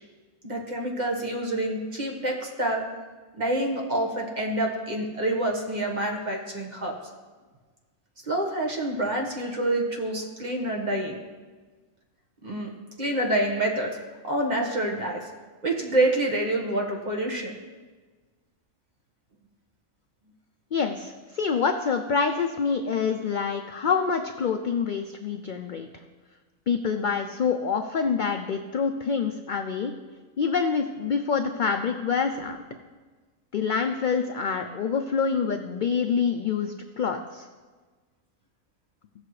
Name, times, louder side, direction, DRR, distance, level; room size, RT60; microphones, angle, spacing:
voice 1, 0.4-2.9 3.4-6.9 8.2-11.2 12.4-12.7 13.0-14.0 14.2-15.3 15.6-17.5, right 1 dB, 35° right, 0 dB, 1.4 m, -27 dB
voice 2, 20.7-25.9 26.7-29.9 30.4-32.6 33.5-37.4, left 6 dB, 70° left, 6 dB, 0.4 m, -26 dB
16.5 x 6.7 x 3.2 m, 1.4 s
omnidirectional pair, 1.4 m